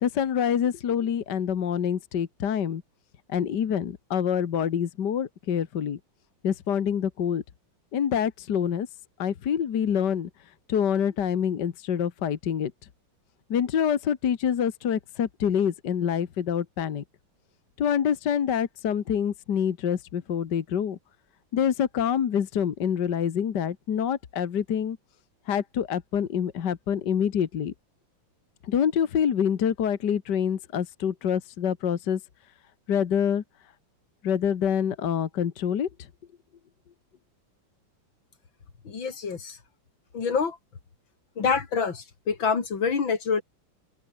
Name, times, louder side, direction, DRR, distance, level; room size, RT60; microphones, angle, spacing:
voice 1, 0.0-2.8 3.3-6.0 6.4-7.4 7.9-8.9 9.2-10.3 10.7-12.7 13.5-17.0 17.8-21.0 21.5-25.0 25.5-27.7 28.7-32.2 32.9-33.4 34.2-35.9, left 8 dB, 65° left, 1.9 m, -26 dB
voice 2, 38.9-39.6 40.1-40.6 41.4-43.4, left 5 dB, 90° left, 3.4 m, -26 dB
open air
omnidirectional pair, 2.1 m